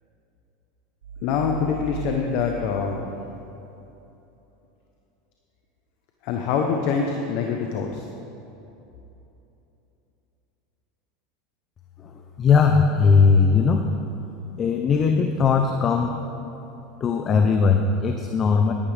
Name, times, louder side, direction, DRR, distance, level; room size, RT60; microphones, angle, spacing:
sound 1, 1.0-3.8, right 7 dB, 85° right, 0.6 m, -38 dB
voice 1, 1.2-3.1 6.2-8.1, left 6 dB, 60° left, 2 dB, 0.9 m, -25 dB
voice 2, 12.4-13.9 14.6-16.1 17.0-18.7, left 5 dB, 35° left, 5 dB, 0.7 m, -19 dB
13.0 x 11.5 x 3.5 m, 3.0 s
hypercardioid pair, 95°, 0 cm